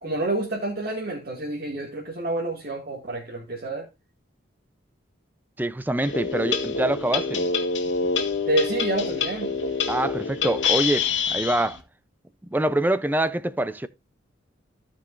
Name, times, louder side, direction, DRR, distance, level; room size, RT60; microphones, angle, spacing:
voice 1, 0.0-3.9 8.5-9.5, right 2 dB, 50° right, 1.9 m, -28 dB
voice 2, 5.6-7.4 9.9-11.8 12.5-13.9, right 1 dB, 10° right, 0.4 m, -25 dB
sound 1, 6.0-11.8, left 5 dB, 75° left, 1.8 m, -26 dB
16.0 x 5.4 x 2.5 m
head